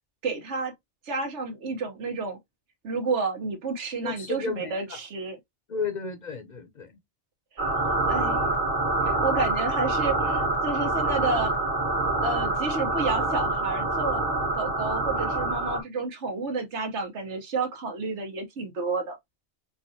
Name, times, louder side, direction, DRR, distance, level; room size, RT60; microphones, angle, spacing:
voice 1, 0.2-0.7 1.0-2.4 2.8-5.4 7.5-8.4 9.0-11.5 12.2-14.2 14.5-19.2, right 3 dB, 85° right, 1.4 m, -30 dB
voice 2, 4.0-5.0 5.7-7.0, left 4 dB, 50° left, 0.6 m, -33 dB
sound 1, 7.6-15.8, right 2 dB, 45° right, 1.4 m, -26 dB
4.6 x 2.5 x 2.6 m
omnidirectional pair, 1.1 m